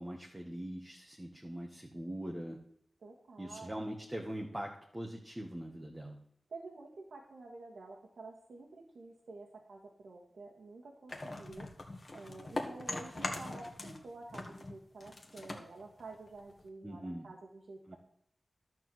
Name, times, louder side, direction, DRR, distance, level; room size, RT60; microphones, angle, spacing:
voice 1, 0.0-2.6 3.4-6.2 16.8-17.3 17.9-18.0, right 1 dB, 15° right, 0 dB, 1.6 m, -42 dB
voice 2, 3.0-3.8 6.5-11.7 12.1-18.0, right 3 dB, 85° right, -2 dB, 1.7 m, -50 dB
sound 1, 11.1-14.0 14.3-16.7, left 2 dB, 40° left, 1.7 m, -42 dB
12.0 x 4.7 x 7.8 m, 0.72 s
wide cardioid pair, 70°, 0 cm